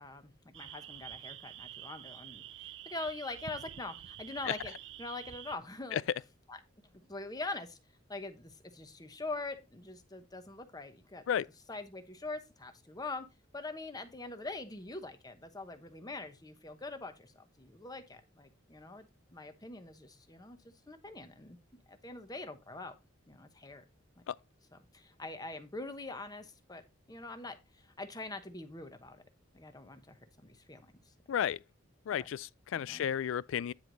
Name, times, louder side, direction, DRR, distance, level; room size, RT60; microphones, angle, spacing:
voice 1, 0.0-4.7 5.0-6.0 6.5-6.6 6.9-7.8 8.1-11.2 11.7-13.3 13.5-20.6 20.9-21.6 21.9-22.9 23.3-23.8 24.7-26.8 27.1-29.2 29.5-31.1 32.2-32.3 32.7-33.1, left 2 dB, 20° left, 1.0 m, -43 dB
sound 1, 0.5-5.6, right 11 dB, 65° right, 0.5 m, -48 dB
voice 2, 31.3-31.6 32.1-33.7, left 9 dB, 75° left, 0.3 m, -32 dB
9.8 x 4.6 x 3.9 m
head